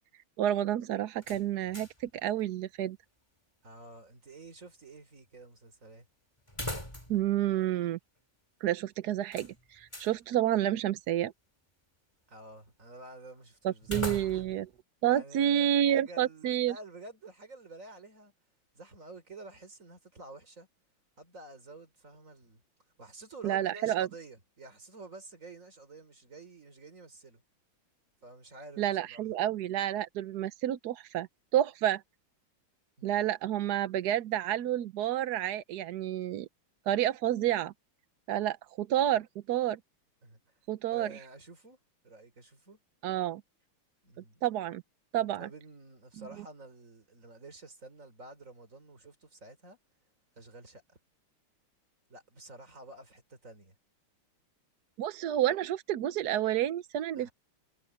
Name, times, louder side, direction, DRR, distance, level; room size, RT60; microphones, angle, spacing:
voice 1, 0.4-3.0 7.1-8.0 8.6-11.3 13.6-14.7 15.0-16.8 23.4-24.1 28.8-31.3 31.5-32.0 33.0-36.5 36.9-37.7 38.3-39.8 40.7-41.2 43.0-43.4 44.4-44.8 45.1-45.5 46.2-46.3 55.0-57.3, right 11 dB, 65° right, 1.0 m, -29 dB
sound 1, 1.2-2.1 2.4-2.5 6.5-7.3 7.6-7.7 9.3-10.2 13.8-14.7, left 1 dB, 10° left, 5.2 m, -40 dB
voice 2, 3.6-6.1 12.3-14.5 15.0-18.3 18.7-20.7 21.2-22.6 23.0-27.4 28.2-29.4 33.0-33.3 40.2-40.4 40.9-41.8 42.0-42.8 44.0-44.4 45.4-49.8 50.4-51.0 52.1-53.8 57.1-57.3, right 2 dB, 35° right, 4.1 m, -50 dB
omnidirectional pair, 2.4 m